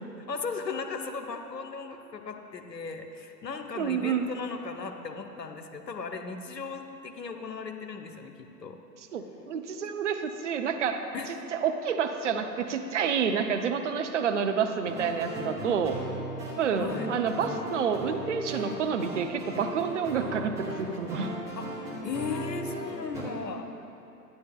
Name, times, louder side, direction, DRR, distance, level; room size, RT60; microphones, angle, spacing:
voice 1, 0.2-8.8 11.1-11.3 16.8-17.1 21.6-23.7, left 5 dB, 80° left, 6 dB, 0.8 m, -37 dB
voice 2, 3.8-4.3 9.1-16.0 16.6-21.3, right 6 dB, 50° right, 6 dB, 0.6 m, -29 dB
sound 1, 14.9-23.2, right 1 dB, 5° right, 1.2 m, -37 dB
11.0 x 9.9 x 2.3 m, 2.9 s
figure-of-eight pair, 110°, 49 cm